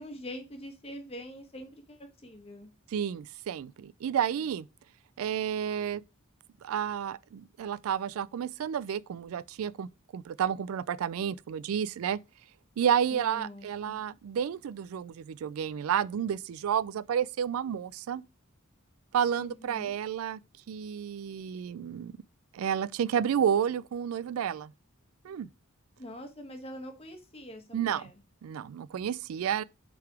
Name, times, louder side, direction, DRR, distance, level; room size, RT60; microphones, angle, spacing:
voice 1, 0.0-2.7 13.1-14.0 19.4-19.9 26.0-28.1, equal, 30° left, 1.3 m, -44 dB
voice 2, 2.9-4.7 5.2-6.0 6.6-12.2 12.8-18.2 19.1-20.4 20.7-22.1 22.5-24.7 25.2-25.5 27.7-28.1 28.4-29.6, right 8 dB, 85° right, 0.3 m, -31 dB
5.8 x 3.9 x 4.7 m
head